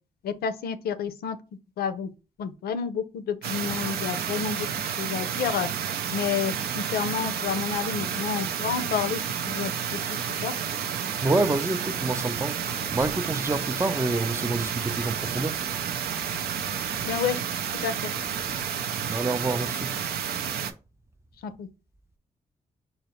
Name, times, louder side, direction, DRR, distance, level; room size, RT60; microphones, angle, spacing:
voice 1, 0.2-1.4 1.8-2.1 2.4-5.7 6.1-10.5 17.0-17.4 17.8-18.1 21.4-21.7, left 7 dB, 70° left, 0.5 m, -30 dB
sound 1, 3.4-20.7, right 8 dB, 75° right, 0.5 m, -30 dB
voice 2, 11.2-15.7 19.1-20.0, right 2 dB, 15° right, 0.4 m, -28 dB
4.0 x 2.0 x 4.2 m
supercardioid pair, 50°, 16 cm